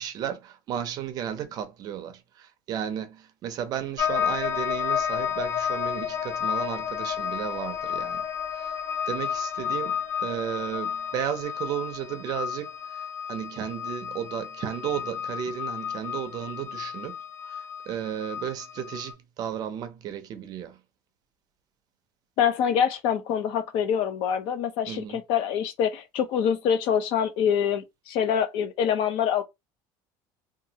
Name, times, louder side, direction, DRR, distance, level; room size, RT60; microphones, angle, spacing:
voice 1, 0.0-8.2 8.5-8.8 9.1-17.2 17.4-20.8 24.9-25.2, right 9 dB, 40° right, 0.5 m, -34 dB
sound 1, 4.0-19.1, left 8 dB, 75° left, 1.3 m, -31 dB
voice 2, 22.4-29.4, left 8 dB, 60° left, 0.6 m, -25 dB
2.8 x 2.4 x 2.7 m
cardioid pair, 170°, 10 cm